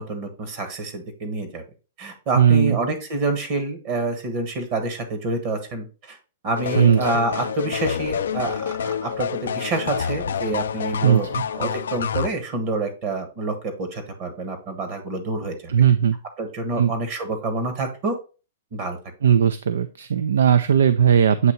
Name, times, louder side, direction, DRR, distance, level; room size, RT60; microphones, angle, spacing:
voice 1, 0.0-1.6 2.0-6.2 6.4-15.7 16.4-18.1 18.7-19.0, right 3 dB, 45° right, 8 dB, 1.3 m, -27 dB
voice 2, 2.3-2.8 6.8-7.0 11.0-11.4 15.7-16.2 16.8-16.9 19.2-21.5, right 8 dB, 90° right, 13 dB, 0.4 m, -17 dB
sound 1, 6.6-12.3, left 7 dB, 85° left, 0.4 m, -28 dB
8.0 x 2.8 x 4.3 m, 0.34 s
hypercardioid pair, 150°, 0 cm